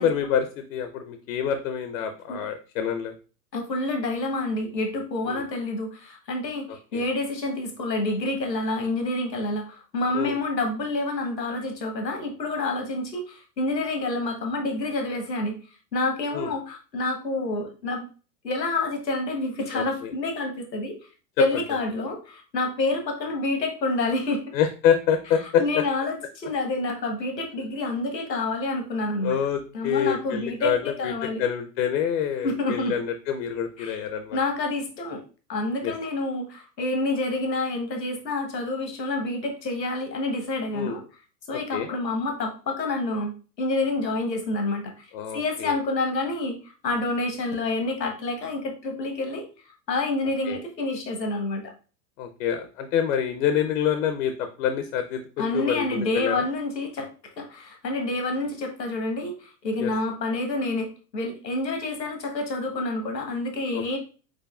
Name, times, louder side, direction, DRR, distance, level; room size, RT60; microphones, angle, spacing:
voice 1, 0.0-3.1 5.3-5.4 6.7-7.0 10.1-10.4 16.3-16.5 19.7-20.1 21.5-21.6 24.5-25.8 29.2-31.1 31.4-34.4 35.8-35.9 40.7-41.0 41.5-41.9 45.1-45.7 50.4-50.6 52.2-56.4 59.8-59.9 63.7-64.0, left 8 dB, 50° left, 8 dB, 0.7 m, -27 dB
voice 2, 3.5-15.6 15.9-18.1 18.4-21.0 21.4-24.5 25.4-29.4 29.7-31.4 32.4-32.9 33.8-33.9 34.3-35.2 35.5-41.0 41.5-43.3 43.6-45.1 45.3-51.7 55.4-64.0, left 2 dB, 80° left, 4 dB, 1.2 m, -28 dB
4.9 x 4.5 x 2.4 m, 0.35 s
figure-of-eight pair, 90°, 49 cm